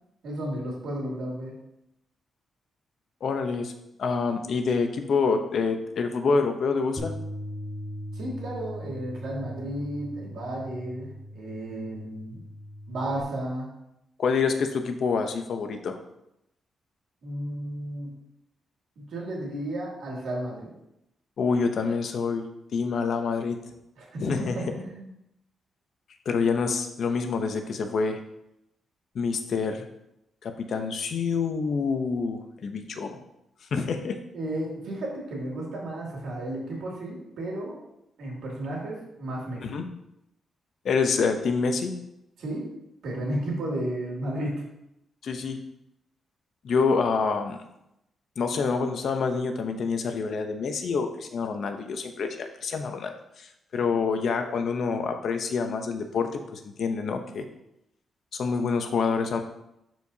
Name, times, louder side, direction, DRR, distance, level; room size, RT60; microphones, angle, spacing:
voice 1, 0.2-1.6 8.1-12.4 12.9-13.7 17.2-18.1 19.0-20.7 24.0-25.1 34.3-37.8 38.2-39.8 42.4-42.7 43.0-44.6, right 1 dB, 75° right, -3 dB, 2.5 m, -33 dB
voice 2, 3.2-3.7 4.0-7.1 14.2-16.0 21.4-22.5 22.7-23.6 24.2-24.6 26.3-28.2 29.1-29.9 30.4-33.2 33.7-34.2 39.6-39.9 40.8-41.9 45.2-45.6 46.6-47.6 48.4-57.4 58.3-59.4, left 5 dB, 55° left, 6 dB, 0.7 m, -27 dB
Bass guitar, 7.0-13.2, equal, 20° left, 1.3 m, -39 dB
11.5 x 4.6 x 2.8 m, 0.83 s
wide cardioid pair, 160°, 0 cm